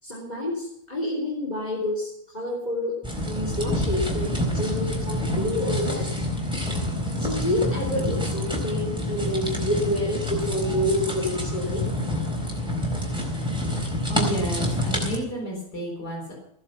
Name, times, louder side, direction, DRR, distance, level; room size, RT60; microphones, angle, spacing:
voice 1, 0.0-2.9 3.3-4.3 4.5-6.1 7.2-11.8, left 1 dB, 25° left, -5 dB, 3.5 m, -28 dB
sound 1, 3.0-15.2, equal, 5° right, 4.1 m, -27 dB
voice 2, 14.1-16.3, equal, 90° left, -1 dB, 4.7 m, -31 dB
16.0 x 11.0 x 5.8 m, 0.79 s
omnidirectional pair, 1.7 m